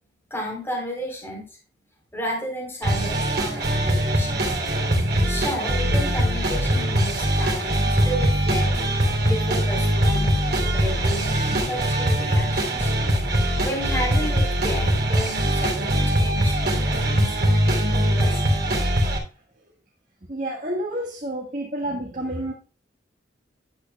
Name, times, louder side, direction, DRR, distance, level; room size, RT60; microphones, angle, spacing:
voice 1, 0.3-1.4 2.1-4.6 5.3-8.8 9.3-12.9 13.6-18.4, equal, 10° left, 3.8 m, -32 dB
sound 1, 2.8-19.2, equal, 60° right, 3.1 m, -22 dB
voice 2, 20.2-22.5, right 1 dB, 45° right, 1.6 m, -29 dB
11.5 x 8.7 x 2.3 m
head